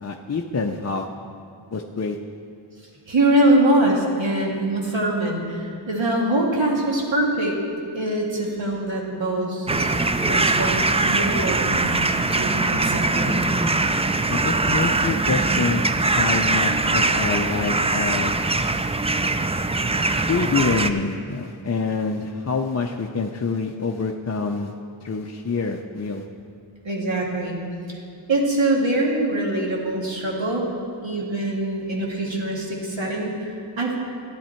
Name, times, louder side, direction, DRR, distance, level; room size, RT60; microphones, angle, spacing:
voice 1, 0.0-1.1 1.7-2.2 14.3-18.4 20.3-24.7 25.0-26.2, left 4 dB, 35° left, 2 dB, 0.5 m, -26 dB
voice 2, 3.1-7.6 7.9-10.0 10.2-13.4 26.8-27.6 27.9-28.0 28.3-30.7 31.0-34.0, right 1 dB, 65° right, -2 dB, 2.0 m, -23 dB
sound 1, 9.7-20.9, right 2 dB, 15° right, 0.3 m, -22 dB
12.0 x 8.7 x 4.4 m, 2.4 s
wide cardioid pair, 60°, 48 cm